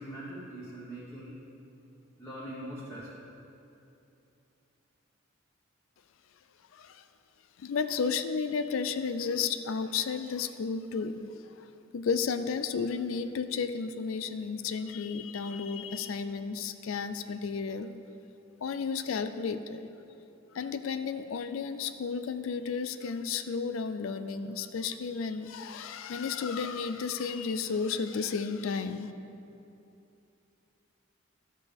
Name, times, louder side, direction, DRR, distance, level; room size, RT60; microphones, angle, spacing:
voice 1, 0.0-1.3 2.2-3.1, right 1 dB, 15° left, -10 dB, 1.4 m, -42 dB
voice 2, 6.7-7.0 7.6-17.9 18.6-19.9 20.5-29.1, left 5 dB, 80° left, 11 dB, 0.4 m, -33 dB
12.0 x 7.5 x 3.4 m, 2.8 s
head